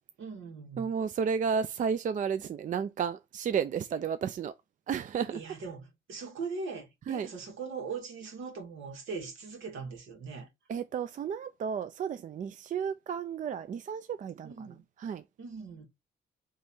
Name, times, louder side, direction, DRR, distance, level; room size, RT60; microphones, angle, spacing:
voice 1, 0.2-0.9 5.3-10.5 14.4-14.8 15.4-15.9, right 4 dB, 75° right, 1.8 m, -40 dB
voice 2, 0.8-4.5 4.9-5.4 7.1-7.3 10.7-14.5 15.0-15.2, right 7 dB, 40° right, 0.4 m, -32 dB
3.5 x 3.1 x 4.3 m
cardioid pair, 90°, 20 cm